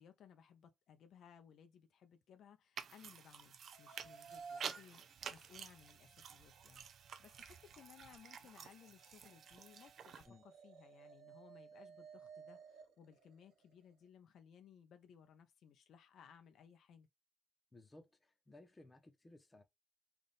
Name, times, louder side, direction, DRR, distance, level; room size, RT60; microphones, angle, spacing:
voice 1, 0.0-17.1, left 8 dB, 70° left, 0.6 m, -62 dB
sound 1, 2.8-10.3, right 7 dB, 60° right, 0.5 m, -51 dB
sound 2, 3.7-13.9, right 5 dB, 85° right, 1.2 m, -58 dB
voice 2, 17.7-19.6, left 2 dB, 20° left, 0.9 m, -60 dB
3.4 x 2.5 x 4.0 m
cardioid pair, 90°, 0 cm